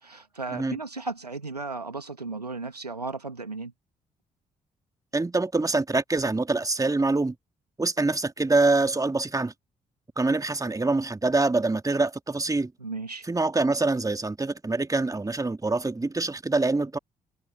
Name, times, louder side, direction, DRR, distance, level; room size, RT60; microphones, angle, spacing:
voice 1, 0.0-3.7 12.8-13.3, right 3 dB, 90° right, 2.3 m, -35 dB
voice 2, 5.1-7.4 7.8-9.5 10.2-12.7 13.3-17.0, right 3 dB, 15° right, 2.2 m, -25 dB
figure-of-eight pair, 40°, 20 cm